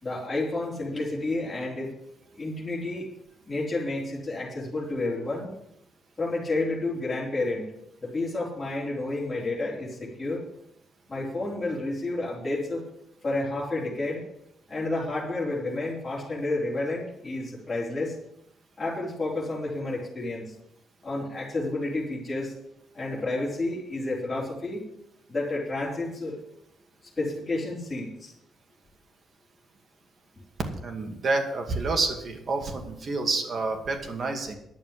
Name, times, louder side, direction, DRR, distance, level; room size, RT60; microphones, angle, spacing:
voice 1, 0.0-1.9 2.4-3.1 3.5-5.5 6.2-7.7 8.0-10.4 11.1-12.8 13.2-14.2 14.7-18.1 18.8-20.5 21.0-22.5 22.9-24.9 25.3-26.4 27.2-28.3, left 2 dB, 20° left, -8 dB, 4.1 m, -30 dB
voice 2, 30.8-34.5, right 3 dB, 45° right, 4 dB, 2.2 m, -28 dB
11.0 x 7.1 x 8.4 m, 0.79 s
cardioid pair, 130°, 0 cm